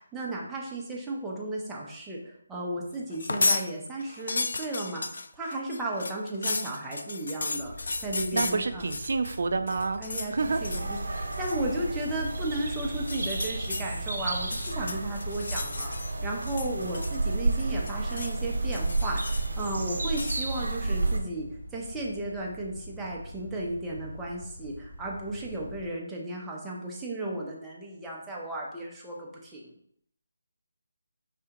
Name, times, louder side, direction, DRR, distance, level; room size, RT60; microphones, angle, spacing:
voice 1, 0.0-9.0 10.0-10.3 10.6-15.9 16.2-29.7, right 1 dB, 5° right, -4 dB, 0.6 m, -35 dB
sound 1, 3.1-3.7 4.0-9.4 9.7-10.3 10.6-10.9 11.3-11.6 13.0-13.8 14.4-16.1 16.4-17.3 17.6-18.4 18.7-19.6 20.1-20.4, left 3 dB, 60° left, 0.4 m, -33 dB
sound 2, 7.6-25.9, left 1 dB, 30° left, 1.7 m, -45 dB
voice 2, 8.3-10.0 10.3-10.6, right 4 dB, 55° right, 10 dB, 0.4 m, -28 dB
sound 3, 10.4-21.2, right 2 dB, 80° right, 0.9 m, -31 dB
4.7 x 3.3 x 2.8 m, 0.69 s
figure-of-eight pair, 170°, 0 cm